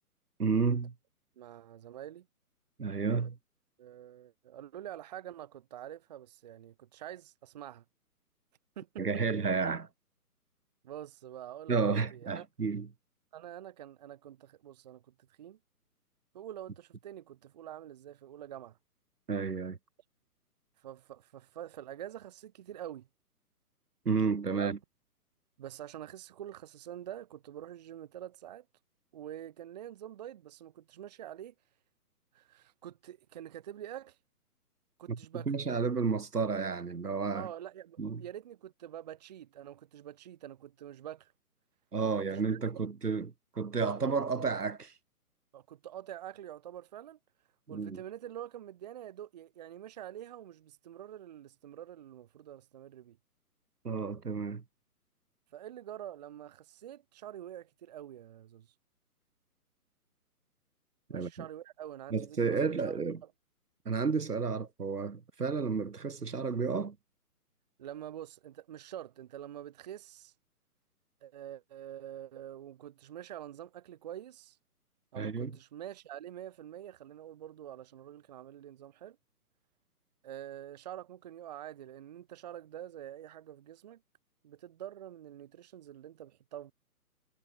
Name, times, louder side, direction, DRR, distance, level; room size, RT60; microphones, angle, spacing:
voice 1, 0.4-0.9 2.8-3.4 9.0-9.9 11.7-12.9 19.3-19.8 24.1-24.8 35.1-37.5 38.0-38.2 41.9-44.9 47.7-48.0 53.8-54.6 61.1-61.5 62.1-63.2 63.9-67.0 75.2-75.6, right 5 dB, 80° right, 1.8 m, -31 dB
voice 2, 1.4-2.3 3.2-3.3 3.8-7.8 8.8-9.0 10.8-12.4 13.3-15.0 15.4-15.6 16.3-18.8 20.8-23.1 24.6-24.7 25.6-28.6 29.1-31.5 32.3-34.2 35.0-35.5 37.3-41.3 42.3-42.9 45.5-47.2 47.7-53.2 55.5-58.7 61.1-63.0 67.8-70.3 71.2-74.6 75.1-79.2 80.2-84.0 84.4-86.7, right 11 dB, 30° right, 0.8 m, -46 dB
figure-of-eight pair, 135°, 46 cm